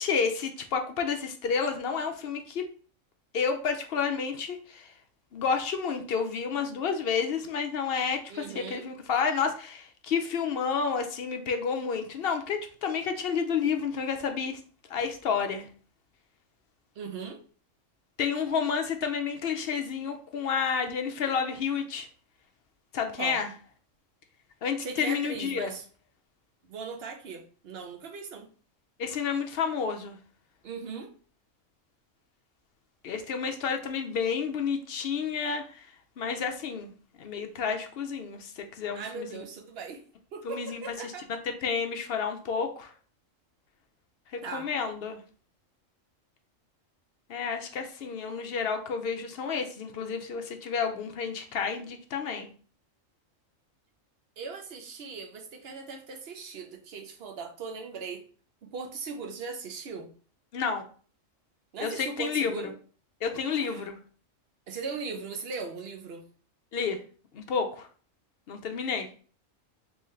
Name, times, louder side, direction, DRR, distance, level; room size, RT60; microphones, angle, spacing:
voice 1, 0.0-2.7 3.3-4.9 5.3-14.6 14.9-15.7 18.2-22.1 22.9-23.5 24.6-25.7 29.0-30.2 33.0-35.9 36.2-36.9 37.2-39.4 40.4-42.9 44.3-45.2 47.3-52.5 60.5-60.8 61.8-62.6 63.2-63.9 66.7-67.0 67.3-67.9 68.5-69.1, left 6 dB, 60° left, 5 dB, 0.7 m, -30 dB
voice 2, 8.3-8.9 17.0-17.4 23.2-23.4 24.8-25.8 26.7-28.5 30.6-31.1 38.9-40.0 40.3-41.3 44.4-44.7 54.4-58.3 58.6-60.1 61.7-62.7 63.5-63.9 64.7-66.3, right 5 dB, 55° right, 4 dB, 0.8 m, -39 dB
3.7 x 3.0 x 3.1 m, 0.41 s
omnidirectional pair, 1.4 m